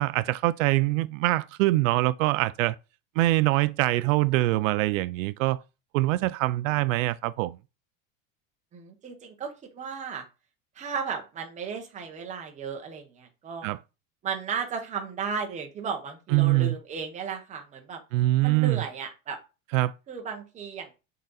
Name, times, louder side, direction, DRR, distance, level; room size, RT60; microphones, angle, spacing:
voice 1, 0.0-2.8 3.2-5.6 5.9-7.6 13.6-13.8 16.3-16.7 18.1-18.8 19.7-19.9, right 18 dB, 80° right, 0.5 m, -24 dB
voice 2, 8.7-10.2 10.8-13.7 14.2-18.0 18.4-19.4 20.1-20.9, right 6 dB, 20° right, 1.0 m, -35 dB
6.3 x 4.0 x 4.0 m
supercardioid pair, 170°, 39 cm